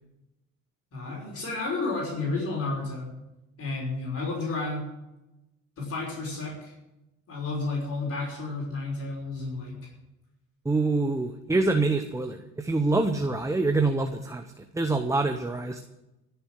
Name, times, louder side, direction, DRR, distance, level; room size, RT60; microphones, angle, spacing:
voice 1, 0.9-3.1 3.6-4.9 5.8-6.7 7.3-9.8, left 3 dB, 45° left, -2 dB, 5.7 m, -31 dB
voice 2, 10.6-15.8, right 3 dB, 10° right, 6 dB, 0.9 m, -26 dB
15.0 x 7.0 x 9.8 m, 0.95 s
cardioid pair, 110°, 32 cm